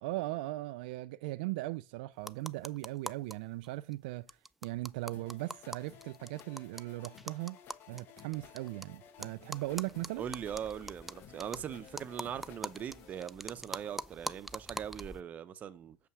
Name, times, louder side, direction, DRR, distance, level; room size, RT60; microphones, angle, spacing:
voice 1, 0.0-4.3 4.6-7.6 7.9-10.2, right 19 dB, 70° right, 0.4 m, -38 dB
sound 1, 2.2-3.3 3.6-3.7 3.9-4.0 4.3-8.8 9.2-15.2, right 1 dB, 5° right, 0.3 m, -44 dB
sound 2, 5.1-13.3, left 8 dB, 45° left, 1.0 m, -56 dB
voice 2, 10.2-16.0, right 9 dB, 30° right, 0.8 m, -41 dB
6.9 x 5.6 x 6.2 m
supercardioid pair, 130°, 5 cm